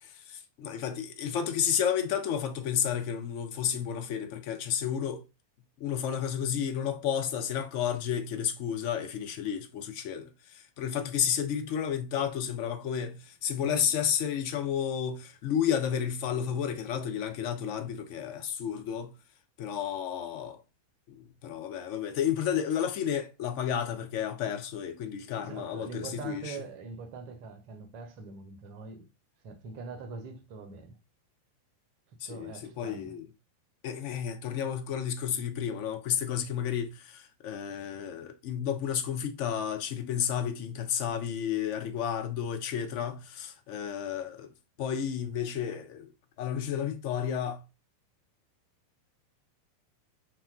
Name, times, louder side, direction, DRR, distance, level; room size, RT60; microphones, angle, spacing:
voice 1, 0.0-5.2 5.8-19.1 19.6-20.6 21.1-26.6 32.2-33.3 33.8-44.5 44.8-46.1 46.4-47.6, left 8 dB, 45° left, 0.4 m, -32 dB
voice 2, 25.4-29.1 29.4-31.0 32.3-33.2, right 4 dB, 45° right, 0.5 m, -43 dB
2.8 x 2.1 x 2.4 m
figure-of-eight pair, 90°, 0 cm